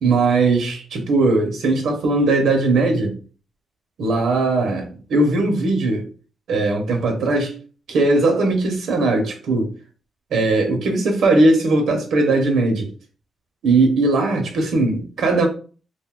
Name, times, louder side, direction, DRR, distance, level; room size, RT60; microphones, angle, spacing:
voice 1, 0.0-3.1 4.0-6.0 6.5-7.5 7.9-9.7 10.3-12.9 13.6-15.5, right 2 dB, 70° right, 0.7 m, -19 dB
2.5 x 2.2 x 3.6 m
cardioid pair, 145°, 0 cm